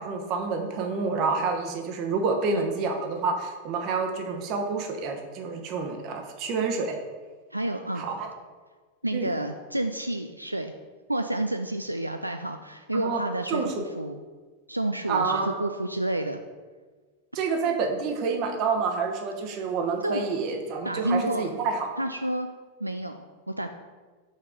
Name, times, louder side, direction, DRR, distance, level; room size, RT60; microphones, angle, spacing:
voice 1, 0.0-7.0 8.0-8.3 9.1-9.3 12.9-13.2 13.5-13.8 15.1-15.7 17.3-21.9, right 4 dB, 40° right, 3 dB, 1.1 m, -28 dB
voice 2, 7.5-8.0 9.0-10.7 11.1-13.6 13.9-14.2 14.7-16.4 20.0-20.3 20.8-21.5 22.0-22.5 22.8-23.7, right 1 dB, 85° right, 6 dB, 0.3 m, -29 dB
5.6 x 4.6 x 5.2 m, 1.4 s
figure-of-eight pair, 90°, 0 cm